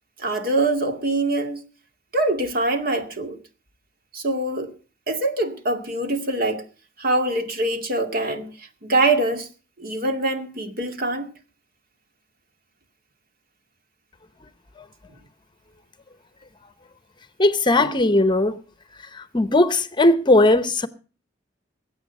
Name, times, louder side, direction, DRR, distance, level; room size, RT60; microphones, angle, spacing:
voice 1, 0.2-1.6 2.1-3.4 4.1-4.7 5.1-6.6 7.0-9.5 9.8-11.3, right 2 dB, 55° right, 2.1 m, -24 dB
voice 2, 17.4-18.6 19.0-20.9, left 2 dB, 25° left, 0.9 m, -18 dB
20.5 x 8.8 x 5.4 m
head